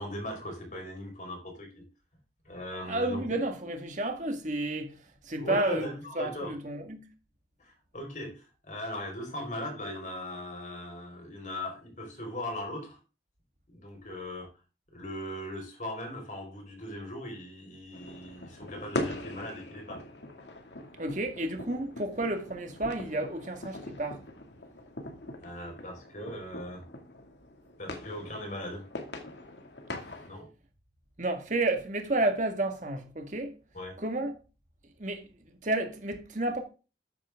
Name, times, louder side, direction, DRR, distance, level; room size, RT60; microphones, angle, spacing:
voice 1, 0.0-1.8 2.4-3.2 5.4-6.5 7.6-13.0 13.7-14.5 14.9-20.0 25.4-26.8 27.8-28.9 30.3-30.5 33.7-34.0, left 1 dB, 45° left, 4.7 m, -39 dB
voice 2, 2.9-5.0 5.2-5.9 6.2-7.0 21.0-24.2 31.2-33.5 34.0-34.3 35.0-36.6, right 2 dB, 45° right, 1.8 m, -31 dB
sound 1, 17.9-30.3, left 1 dB, 80° left, 2.2 m, -41 dB
13.5 x 9.6 x 3.7 m
head